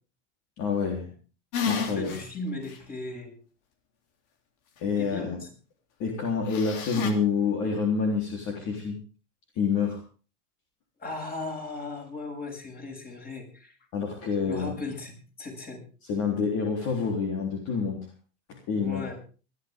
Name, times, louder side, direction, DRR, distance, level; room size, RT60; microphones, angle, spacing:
voice 1, 0.6-1.1 1.6-2.1 4.8-5.4 6.0-9.0 9.6-10.0 13.9-14.9 16.0-18.0 18.5-19.1, left 5 dB, 50° left, 0 dB, 3.7 m, -27 dB
sound 1, 1.5-2.2 2.7-2.8 6.5-7.1, left 5 dB, 70° left, 3.4 m, -30 dB
voice 2, 1.7-3.4 4.8-5.5 11.0-13.7 14.4-15.8 18.7-19.2, left 2 dB, 25° left, 2 dB, 7.2 m, -37 dB
21.0 x 12.0 x 3.7 m, 0.37 s
supercardioid pair, 120°, 36 cm